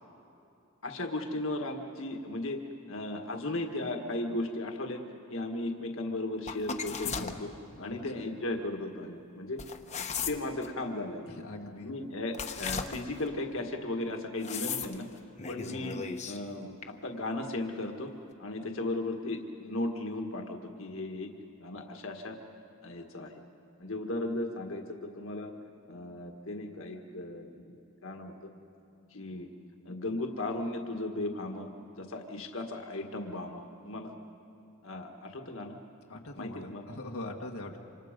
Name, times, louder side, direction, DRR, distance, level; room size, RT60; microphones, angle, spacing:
voice 1, 0.8-2.6 2.9-5.0 5.3-7.5 7.8-9.6 10.0-11.4 11.8-15.1 15.5-18.1 18.4-21.3 21.6-22.4 22.8-23.4 23.8-25.5 25.9-27.8 28.0-28.5 29.1-29.5 29.8-34.1 34.8-35.8 36.3-36.8, left 2 dB, 65° left, 3 dB, 1.8 m, -36 dB
sound 1, 6.5-7.4 9.6-10.7 12.3-13.3 14.4-15.0 15.4-16.4 16.8-16.9, left 6 dB, 35° left, 1.0 m, -36 dB
voice 2, 6.9-7.4 7.7-8.2 11.3-11.9 36.1-37.8, left 2 dB, 85° left, 0 dB, 1.7 m, -42 dB
28.0 x 26.0 x 5.2 m, 2.8 s
head